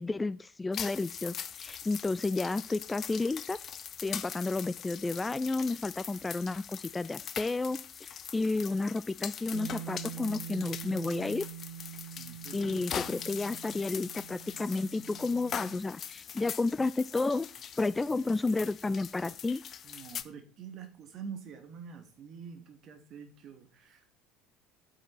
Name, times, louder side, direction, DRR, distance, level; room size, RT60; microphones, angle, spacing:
voice 1, 0.0-3.6 4.0-11.5 12.5-17.5 17.8-19.6, left 3 dB, 15° left, 17 dB, 0.4 m, -31 dB
Fried egg, 0.7-20.2, left 8 dB, 40° left, 0.8 m, -42 dB
Bass guitar, 9.5-15.8, right 10 dB, 60° right, 1.1 m, -45 dB
voice 2, 12.2-12.8 19.8-24.1, right 6 dB, 40° right, 5 dB, 2.6 m, -46 dB
9.1 x 8.5 x 4.4 m, 0.35 s
figure-of-eight pair, 65°, 0 cm